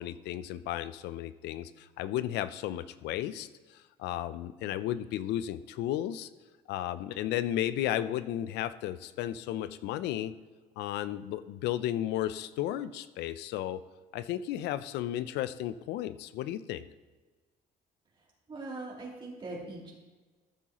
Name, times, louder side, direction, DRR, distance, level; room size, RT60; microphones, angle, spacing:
voice 1, 0.0-6.3 6.7-10.3 10.8-13.8 14.1-16.9, left 12 dB, 85° left, 15 dB, 0.5 m, -34 dB
voice 2, 18.2-19.9, right 2 dB, 30° right, -5 dB, 3.0 m, -41 dB
13.5 x 7.2 x 3.0 m, 1.3 s
cardioid pair, 110°, 17 cm